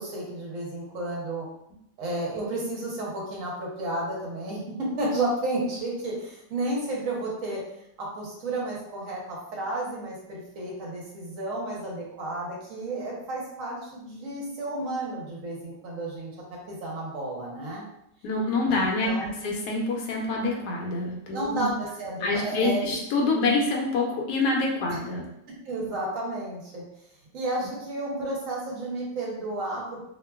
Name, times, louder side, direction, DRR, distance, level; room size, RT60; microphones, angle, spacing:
voice 1, 0.0-1.5 2.0-7.6 8.0-17.9 18.7-19.4 21.3-23.0 24.9-25.0 25.5-26.8 27.3-30.1, right 2 dB, 60° right, -3 dB, 0.9 m, -32 dB
voice 2, 18.2-21.7 22.2-25.3, left 3 dB, 70° left, -1 dB, 1.0 m, -26 dB
2.9 x 2.2 x 2.2 m, 0.77 s
omnidirectional pair, 1.9 m